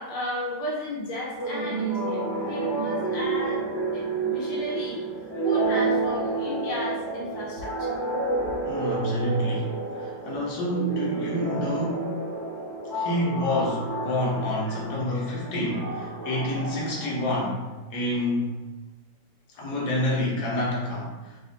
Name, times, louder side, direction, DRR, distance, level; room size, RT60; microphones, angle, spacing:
voice 1, 0.0-2.2 2.5-3.6 3.9-5.0 5.4-7.9 14.7-14.8, left 1 dB, 75° left, -4 dB, 1.4 m, -33 dB
sound 1, 1.4-17.7, right 3 dB, 30° right, 0.5 m, -30 dB
voice 2, 8.6-9.7 10.0-12.2 12.9-17.6 17.9-18.5 19.5-21.3, left 1 dB, 60° left, -4 dB, 1.4 m, -28 dB
3.5 x 3.0 x 3.9 m, 1.1 s
omnidirectional pair, 2.1 m